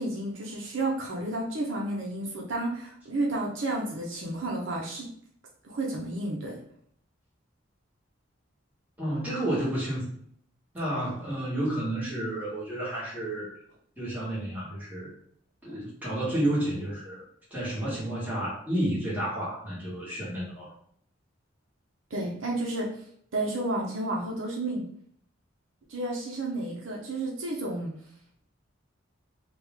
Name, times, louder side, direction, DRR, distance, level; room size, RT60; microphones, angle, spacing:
voice 1, 0.0-5.1 5.6-6.5 22.1-22.9 23.3-24.8 25.9-27.9, right 2 dB, 70° right, -2 dB, 0.8 m, -31 dB
voice 2, 9.0-10.1 10.7-13.6 14.0-15.1 15.6-17.2 17.5-20.7, right 1 dB, 10° right, -8 dB, 1.5 m, -31 dB
3.0 x 2.4 x 3.5 m, 0.64 s
head